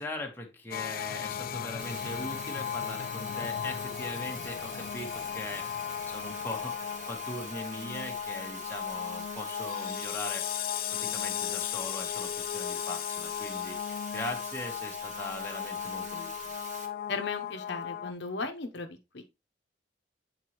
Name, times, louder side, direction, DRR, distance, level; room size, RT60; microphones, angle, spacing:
voice 1, 0.0-5.7 6.1-10.5 10.9-13.8 14.1-16.3, left 1 dB, 15° left, 1.1 m, -40 dB
sound 1, 0.7-18.1, left 9 dB, 50° left, 0.3 m, -36 dB
Bathtub (filling or washing), 1.8-16.9, right 3 dB, 45° right, 1.5 m, -46 dB
voice 2, 17.1-19.2, left 4 dB, 70° left, 0.8 m, -36 dB
7.9 x 4.0 x 3.0 m
head